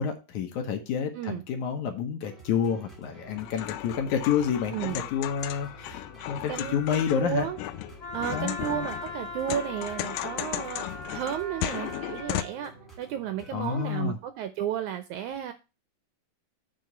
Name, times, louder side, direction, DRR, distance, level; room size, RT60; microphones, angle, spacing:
voice 1, 0.0-7.5 8.3-8.6 13.5-14.2, left 7 dB, 70° left, 2.3 m, -29 dB
sound 1, 2.2-13.9, right 2 dB, ahead, 1.4 m, -50 dB
sound 2, 3.3-12.4, left 14 dB, 85° left, 2.3 m, -36 dB
voice 2, 6.5-7.6 8.1-10.9 11.1-12.7 13.0-15.5, right 10 dB, 80° right, 1.8 m, -33 dB
Wind instrument woodwind instrument, 8.0-12.5, left 2 dB, 30° left, 1.4 m, -40 dB
7.7 x 3.8 x 6.7 m
omnidirectional pair, 3.9 m